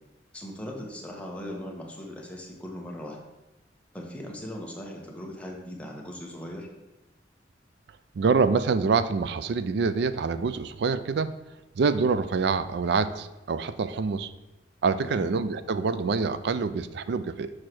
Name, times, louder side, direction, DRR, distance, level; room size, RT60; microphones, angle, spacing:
voice 1, 0.3-3.3 3.9-6.7 15.0-15.3, left 1 dB, 5° left, -1 dB, 1.0 m, -39 dB
voice 2, 8.2-11.3 11.8-14.3 14.8-17.5, right 5 dB, 60° right, 13 dB, 0.4 m, -26 dB
6.4 x 3.2 x 5.9 m, 1.0 s
head